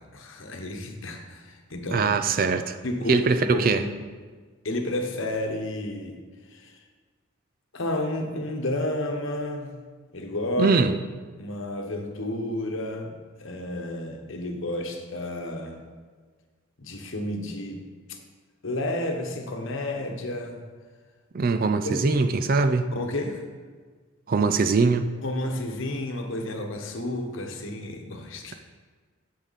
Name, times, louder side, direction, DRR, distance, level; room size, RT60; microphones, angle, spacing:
voice 1, 0.0-2.1 2.8-3.2 3.5-3.9 4.6-6.2 6.5-6.8 7.7-9.7 10.1-10.8 11.4-15.8 16.8-17.8 18.1-18.2 18.6-20.6 21.8-22.2 22.9-23.4 25.2-28.6, left 1 dB, 65° left, 4 dB, 1.1 m, -31 dB
voice 2, 1.9-2.8 3.1-3.8 10.6-10.9 21.3-22.9 24.3-25.1, right 4 dB, 40° right, 9 dB, 0.4 m, -22 dB
9.3 x 6.6 x 4.1 m, 1.5 s
head